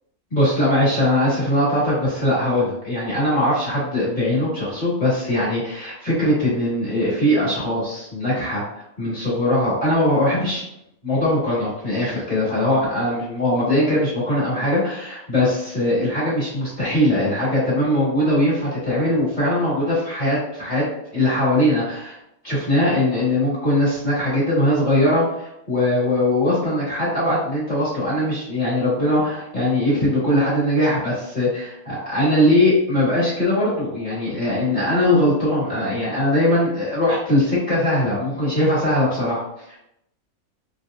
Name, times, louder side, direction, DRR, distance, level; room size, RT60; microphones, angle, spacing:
voice 1, 0.3-8.6 9.0-10.6 11.0-20.8 21.1-22.2 22.4-39.8, left 1 dB, 35° left, -9 dB, 1.3 m, -21 dB
2.9 x 2.8 x 2.3 m, 0.80 s
omnidirectional pair, 1.5 m